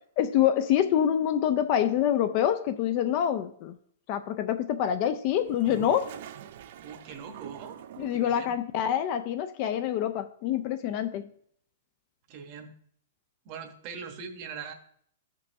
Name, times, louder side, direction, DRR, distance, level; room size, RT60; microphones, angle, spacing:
voice 1, 0.2-3.8 4.1-6.1 8.0-11.3, left 10 dB, 35° left, 0.4 m, -26 dB
Toilet flush, 5.3-8.4, right 10 dB, 50° right, 0.4 m, -44 dB
voice 2, 6.8-7.8 8.1-8.6 12.3-12.8 13.4-14.7, right 6 dB, 35° right, 0.9 m, -41 dB
13.0 x 5.3 x 2.7 m
hypercardioid pair, 160°, 0 cm